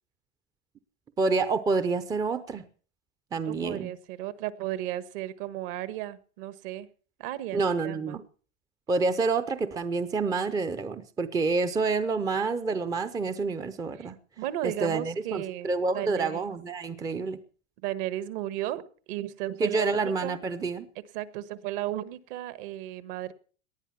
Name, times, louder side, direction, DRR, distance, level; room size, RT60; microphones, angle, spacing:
voice 1, 1.2-2.6 3.3-3.9 7.5-8.2 8.9-14.2 14.6-17.4 19.6-20.9, right 4 dB, 10° right, 11 dB, 0.6 m, -28 dB
voice 2, 3.4-6.9 7.2-8.2 14.0-14.1 14.4-15.7 15.9-16.5 17.8-18.8 19.1-20.4 21.1-23.3, right 13 dB, 50° right, 15 dB, 1.5 m, -34 dB
19.0 x 11.5 x 5.7 m, 0.41 s
supercardioid pair, 150°, 35 cm